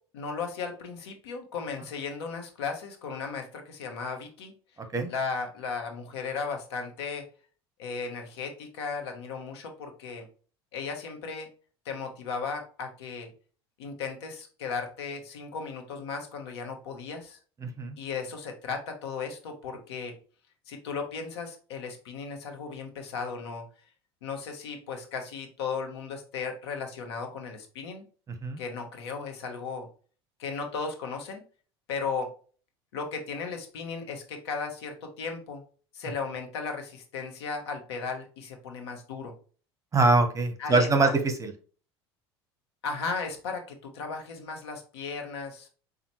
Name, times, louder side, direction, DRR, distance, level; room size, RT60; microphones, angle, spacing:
voice 1, 0.1-4.5 5.1-7.2 7.8-10.3 10.7-11.5 11.8-13.3 13.8-17.4 18.0-20.1 20.7-23.6 24.2-28.0 28.6-29.9 30.4-31.4 31.9-32.3 32.9-35.6 35.9-39.3 40.6-41.2 42.8-45.7, left 5 dB, 80° left, 4 dB, 1.0 m, -36 dB
voice 2, 17.6-18.0 28.4-28.6 39.9-41.5, right 3 dB, 25° right, 7 dB, 0.9 m, -23 dB
5.2 x 2.4 x 3.0 m, 0.39 s
hypercardioid pair, 80°, 14 cm